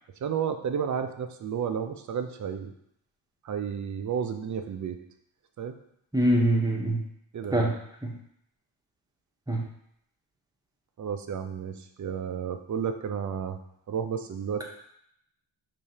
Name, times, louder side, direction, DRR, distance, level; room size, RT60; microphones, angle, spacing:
voice 1, 0.2-2.7 3.4-5.0 5.6-5.8 7.3-7.7 11.0-13.6 13.9-14.6, right 7 dB, 40° right, 7 dB, 0.5 m, -32 dB
voice 2, 6.1-7.0 7.5-7.7 8.0-8.1 9.5-9.6, right 1 dB, 10° right, -1 dB, 0.8 m, -23 dB
4.8 x 3.1 x 2.8 m, 0.73 s
cardioid pair, 70°, 49 cm